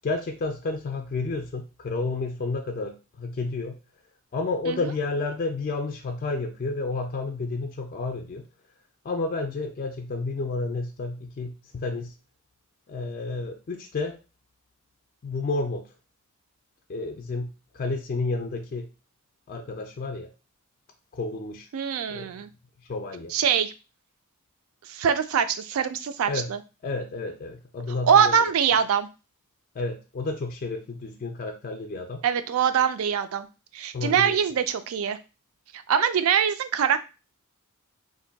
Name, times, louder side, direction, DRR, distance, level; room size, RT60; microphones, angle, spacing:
voice 1, 0.0-3.8 4.3-8.5 9.0-12.1 12.9-14.2 15.2-15.9 16.9-18.9 19.5-20.3 21.1-21.7 22.1-22.3 22.9-23.3 26.3-26.5 26.8-28.4 29.8-32.2 33.9-34.4, left 3 dB, 40° left, 4 dB, 0.3 m, -31 dB
voice 2, 21.7-22.5 23.3-23.7 24.9-26.6 28.1-29.1 32.2-33.5 33.7-35.2 35.9-37.0, right 7 dB, 70° right, 11 dB, 0.4 m, -23 dB
2.6 x 2.2 x 3.8 m, 0.30 s
head